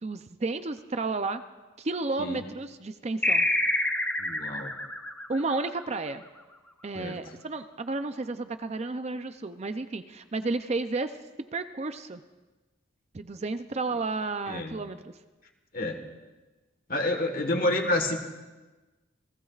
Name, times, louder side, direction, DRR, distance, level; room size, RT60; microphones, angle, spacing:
voice 1, 0.0-1.4 1.8-3.5 5.3-6.2 6.8-11.2 11.5-12.2 13.1-15.1, right 3 dB, 35° right, 10 dB, 0.5 m, -32 dB
sound 1, 3.2-6.2, left 1 dB, 10° left, 0.8 m, -27 dB
voice 2, 4.2-4.7 6.9-7.2 14.5-14.8 15.7-16.0 16.9-18.2, left 1 dB, 45° left, 5 dB, 1.5 m, -28 dB
28.5 x 16.5 x 2.4 m, 1.2 s
head